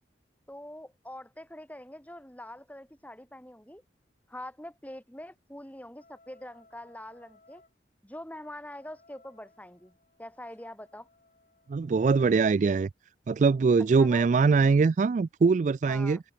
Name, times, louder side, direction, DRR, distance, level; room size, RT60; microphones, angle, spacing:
voice 1, 0.5-3.8 4.3-7.6 8.0-11.1 13.9-14.4 15.9-16.2, left 1 dB, 10° left, 4.5 m, -44 dB
sound 1, 6.0-7.7 8.4-12.9, left 2 dB, 45° left, 6.4 m, -63 dB
voice 2, 11.7-12.9 13.3-16.2, right 4 dB, 45° right, 0.3 m, -22 dB
head